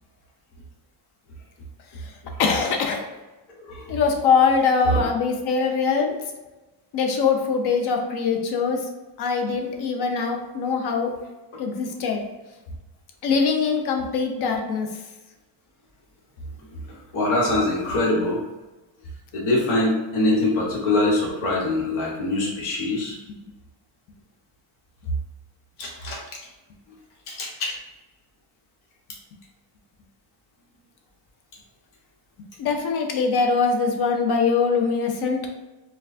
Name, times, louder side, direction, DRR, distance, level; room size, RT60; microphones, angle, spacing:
voice 1, 2.4-3.0 3.9-6.1 6.9-8.8 9.2-11.1 11.6-12.2 13.2-14.9 32.6-35.4, left 5 dB, 55° left, 3 dB, 0.6 m, -22 dB
voice 2, 3.6-4.0 4.8-5.0 17.1-18.4 19.3-23.2 25.8-26.2 27.3-27.7, left 2 dB, 85° left, -3 dB, 1.3 m, -23 dB
4.4 x 2.3 x 2.6 m, 1.1 s
cardioid pair, 175°, 47 cm